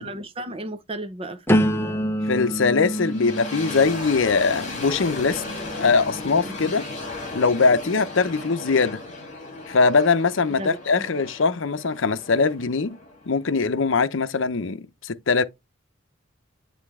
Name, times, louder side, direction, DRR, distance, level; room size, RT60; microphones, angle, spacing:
voice 1, 0.0-2.2 6.4-6.7 10.5-11.2, right 1 dB, 30° right, 0.8 m, -36 dB
sound 1, 1.5-7.3 7.9-8.3, equal, 10° left, 0.7 m, -28 dB
voice 2, 2.2-5.4 5.7-6.9 7.3-9.0 9.7-13.0 13.3-15.4, left 4 dB, 70° left, 0.7 m, -21 dB
sound 2, 2.8-13.8, left 2 dB, 35° left, 2.9 m, -36 dB
9.5 x 3.3 x 3.5 m
head